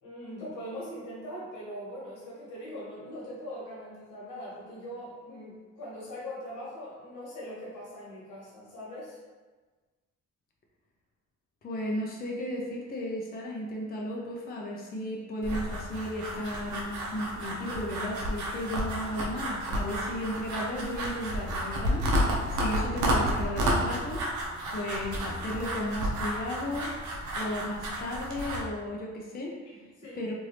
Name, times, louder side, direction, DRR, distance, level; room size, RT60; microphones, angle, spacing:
voice 1, 0.0-9.2 29.6-30.2, equal, 85° left, -6 dB, 1.4 m, -41 dB
voice 2, 11.6-22.0 22.5-24.2 24.7-26.9 27.4-29.6 30.1-30.3, left 1 dB, 30° left, -2 dB, 0.5 m, -34 dB
sound 1, 15.4-28.6, equal, 75° right, 0.7 m, -31 dB
3.2 x 2.6 x 3.0 m, 1.3 s
cardioid pair, 90°, 30 cm